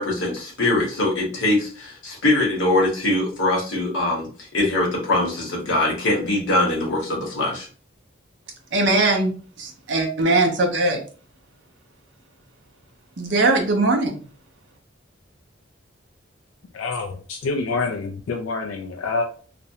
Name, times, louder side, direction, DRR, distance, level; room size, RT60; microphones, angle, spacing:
voice 1, 0.0-4.3 4.5-7.7, left 2 dB, 70° left, 0.9 m, -22 dB
voice 2, 8.7-11.0 13.2-14.2, right 2 dB, 60° right, 0.5 m, -20 dB
voice 3, 16.7-19.2, left 3 dB, 85° left, 0.3 m, -27 dB
2.4 x 2.0 x 2.7 m
head